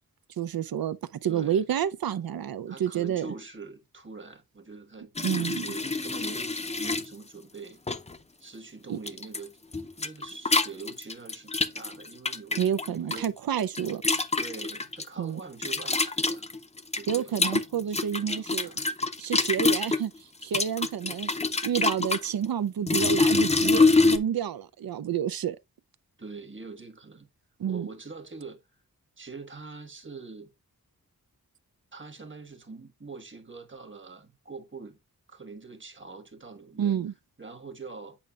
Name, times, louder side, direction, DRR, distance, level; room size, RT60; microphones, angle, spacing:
voice 1, 0.4-3.3 5.2-5.6 8.9-9.0 12.6-14.0 15.2-15.4 17.1-18.7 19.2-20.1 20.4-21.3 21.6-25.6 27.6-27.9 36.8-37.1, right 9 dB, 80° right, 0.5 m, -29 dB
voice 2, 1.2-1.7 2.7-7.8 8.4-9.6 10.0-13.3 14.4-16.5 16.9-18.8 23.5-24.0 26.2-27.3 27.7-28.6 29.2-30.5 31.9-35.0 35.3-37.0 37.4-38.2, right 4 dB, 35° right, 1.3 m, -44 dB
sound 1, 5.2-7.1 7.9-8.2 9.1-9.4 9.7-13.3 13.6-15.0 15.6-20.0 20.4-22.3 22.9-24.2, left 3 dB, 20° left, 0.5 m, -25 dB
8.5 x 5.2 x 2.3 m
wide cardioid pair, 110°, 35 cm